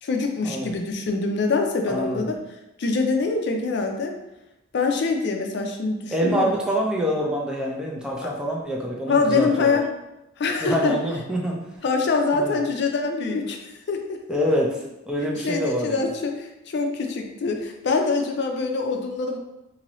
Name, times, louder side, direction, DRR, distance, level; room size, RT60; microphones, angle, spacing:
voice 1, 0.0-2.4 2.8-4.2 4.7-6.5 8.2-8.3 9.1-9.8 10.4-10.9 11.8-13.6 13.9-14.4 15.4-19.4, left 4 dB, 60° left, 3 dB, 0.4 m, -24 dB
voice 2, 1.9-2.3 6.1-9.8 10.6-11.8 12.3-12.6 14.3-14.7 15.1-16.1, equal, 5° right, -3 dB, 0.5 m, -26 dB
2.8 x 2.7 x 3.0 m, 0.92 s
head